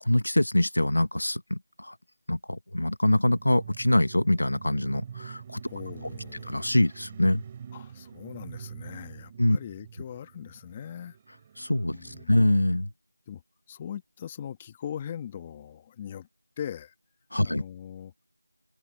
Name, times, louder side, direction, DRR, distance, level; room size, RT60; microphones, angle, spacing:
voice 1, 0.0-1.9 2.3-5.6 6.5-7.4 9.4-9.6 11.6-12.9 17.3-17.6, left 1 dB, 80° left, 1.4 m, -24 dB
sound 1, 3.2-12.2, right 8 dB, 15° right, 4.1 m, -45 dB
voice 2, 5.6-6.6 7.7-11.2 11.9-12.4 13.3-13.4 13.7-16.3 16.6-16.9 17.4-18.1, left 9 dB, 15° left, 1.3 m, -40 dB
figure-of-eight pair, 175°, 0 cm